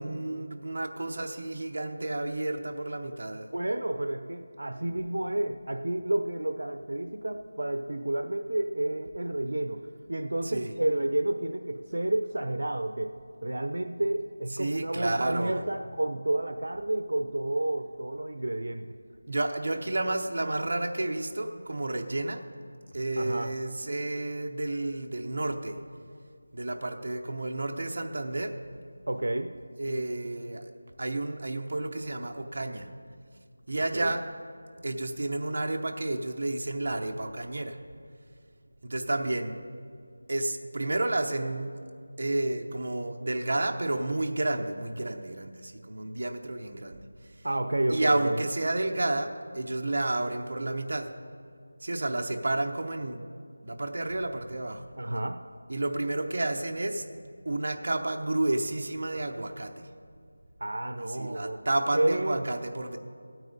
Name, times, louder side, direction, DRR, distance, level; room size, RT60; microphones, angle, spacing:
voice 1, 0.0-3.5 10.4-10.7 14.6-15.6 19.3-22.4 22.9-25.8 26.5-28.5 29.8-30.6 31.0-32.9 33.7-34.2 34.8-37.8 38.8-39.6 40.3-41.7 42.2-47.0 47.9-51.1 51.8-53.2 53.6-54.8 55.7-57.1 57.4-59.9 61.0-63.0, right 2 dB, 50° right, 4 dB, 0.8 m, -31 dB
voice 2, 3.5-13.1 13.4-18.9 23.2-23.5 29.1-29.6 33.9-34.2 47.4-48.5 55.0-55.4 60.6-61.6 61.9-62.4, right 1 dB, 80° right, 8 dB, 0.6 m, -30 dB
16.0 x 9.0 x 4.0 m, 2.2 s
figure-of-eight pair, 175°, 0 cm